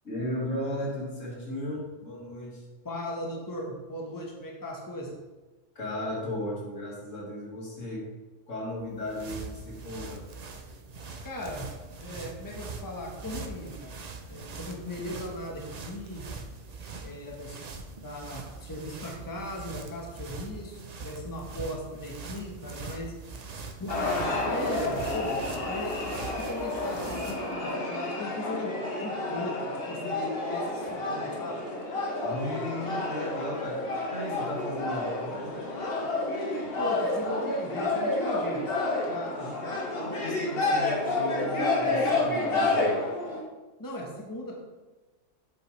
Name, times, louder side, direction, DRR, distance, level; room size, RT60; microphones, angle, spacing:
voice 1, 0.0-2.6 5.8-8.1 8.5-10.2 32.2-33.8 34.1-35.7 39.4-43.1, left 1 dB, 80° left, -4 dB, 2.4 m, -36 dB
voice 2, 2.8-5.2 11.2-11.7 12.0-14.0 14.3-16.2 17.0-17.6 18.0-23.1 23.8-25.3 25.7-28.7 29.0-31.6 36.8-38.6 39.1-39.4 43.8-44.6, left 1 dB, 15° left, -1 dB, 1.2 m, -37 dB
sound 1, 8.8-27.6, right 3 dB, 40° right, 0.6 m, -42 dB
sound 2, 23.9-43.4, left 2 dB, 50° left, 1.5 m, -30 dB
8.0 x 7.4 x 3.3 m, 1.2 s
omnidirectional pair, 1.3 m